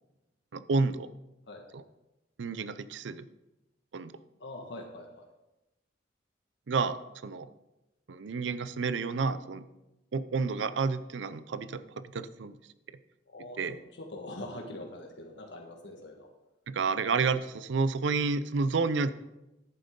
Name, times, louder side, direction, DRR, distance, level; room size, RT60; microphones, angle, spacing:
voice 1, 0.5-1.1 1.7-1.8 2.4-3.3 3.9-4.1 6.7-7.0 7.2-7.5 8.1-9.7 10.1-12.6 13.6-13.8 16.7-19.1, right 4 dB, 80° right, 14 dB, 0.5 m, -30 dB
voice 2, 4.4-5.3 13.3-16.3, left 1 dB, 70° left, 1 dB, 1.5 m, -43 dB
10.5 x 9.1 x 3.7 m, 0.96 s
head